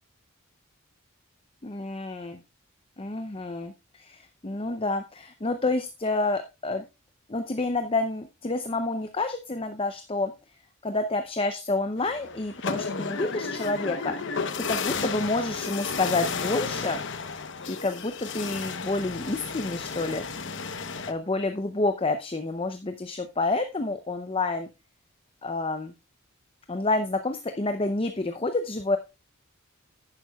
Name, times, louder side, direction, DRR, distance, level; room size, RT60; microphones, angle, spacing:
voice 1, 1.6-2.4 3.0-6.9 7.3-10.3 10.8-14.4 14.7-17.0 17.7-20.2 21.1-24.7 25.4-25.9 26.7-29.0, left 2 dB, 25° left, 8 dB, 0.6 m, -29 dB
sound 1, 12.0-21.1, left 5 dB, 55° left, 0.9 m, -33 dB
11.0 x 9.9 x 2.3 m, 0.26 s
head